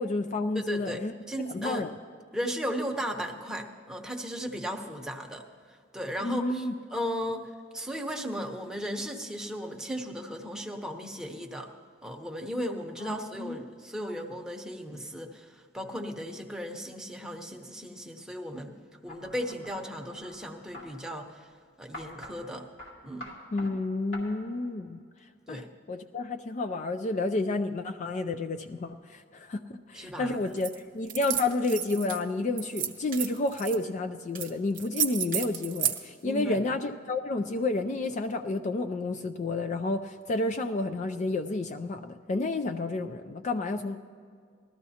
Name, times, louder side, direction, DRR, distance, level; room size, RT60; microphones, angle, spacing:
voice 1, 0.0-2.0 6.2-6.7 13.0-13.6 23.5-25.0 25.5-44.0, left 2 dB, 40° left, 6 dB, 0.4 m, -30 dB
voice 2, 0.5-1.0 1.3-1.8 2.3-6.7 6.9-11.7 12.0-18.8 19.0-21.5 21.8-22.7 23.0-23.3 25.5-25.7 29.9-30.4 36.2-36.7, equal, 5° right, 1 dB, 0.8 m, -36 dB
sound 1, 19.1-20.9 21.9-22.3 22.8-22.9 23.2-23.7 24.1-24.2, left 1 dB, 75° left, 2.7 m, -44 dB
sound 2, 30.6-30.8 31.1-32.2 32.6-33.8 34.3-34.5 34.7-36.0, right 10 dB, 45° right, 0.9 m, -31 dB
19.0 x 13.5 x 2.8 m, 2.2 s
head